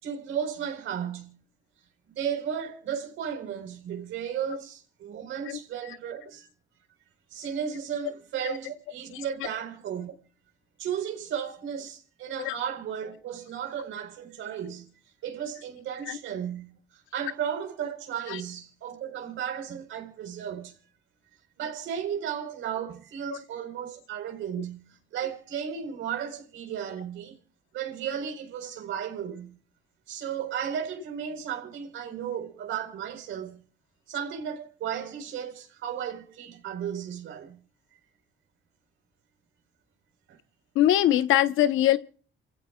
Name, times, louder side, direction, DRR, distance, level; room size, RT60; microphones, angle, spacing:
voice 1, 0.0-1.3 2.1-6.5 7.3-10.1 10.8-14.9 15.2-20.7 21.6-24.8 25.1-27.4 27.7-29.5 30.1-33.6 34.1-37.6 40.3-40.4, right 8 dB, 80° right, 4.3 m, -34 dB
voice 2, 40.7-42.0, left 12 dB, 90° left, 1.0 m, -23 dB
29.0 x 16.0 x 2.3 m
cardioid pair, 90°, 20 cm